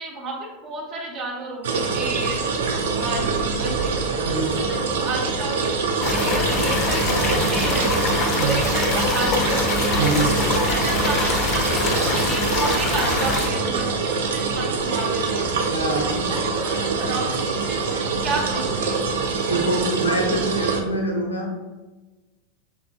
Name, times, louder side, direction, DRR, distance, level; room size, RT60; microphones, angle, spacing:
voice 1, 0.0-2.5 3.0-3.9 4.3-4.5 4.9-7.9 8.4-9.6 10.1-15.5 16.3-17.4 17.7-19.0, right 3 dB, 40° right, -1 dB, 1.1 m, -31 dB
sound 1, 1.6-20.8, right 4 dB, 65° right, 0.5 m, -24 dB
voice 2, 4.2-4.6 8.2-8.6 9.9-10.3 15.7-16.3 19.5-21.6, right 1 dB, 80° left, 1 dB, 0.8 m, -25 dB
sound 2, 6.0-13.5, left 3 dB, 35° left, 0.7 m, -24 dB
5.8 x 3.6 x 2.3 m, 1.2 s
figure-of-eight pair, 85°, 0 cm